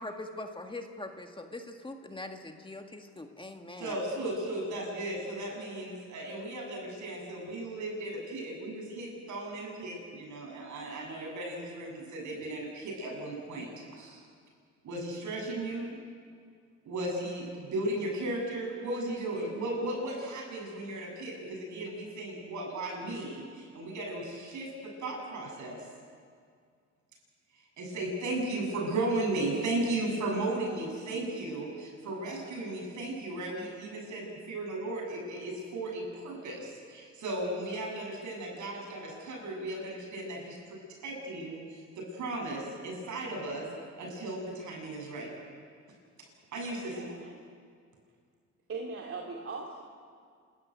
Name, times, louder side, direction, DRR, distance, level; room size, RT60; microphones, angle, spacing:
voice 1, 0.0-4.0, left 2 dB, 15° left, 4 dB, 1.8 m, -42 dB
voice 2, 3.8-14.2 14.8-16.0 16.8-25.8 27.8-40.6 41.0-43.7 44.0-45.3 46.5-47.1, right 2 dB, 75° right, 0 dB, 7.8 m, -35 dB
voice 3, 46.7-47.4 48.7-49.8, right 4 dB, 45° right, -1 dB, 2.6 m, -40 dB
28.0 x 13.5 x 9.4 m, 2.1 s
cardioid pair, 90°, 30 cm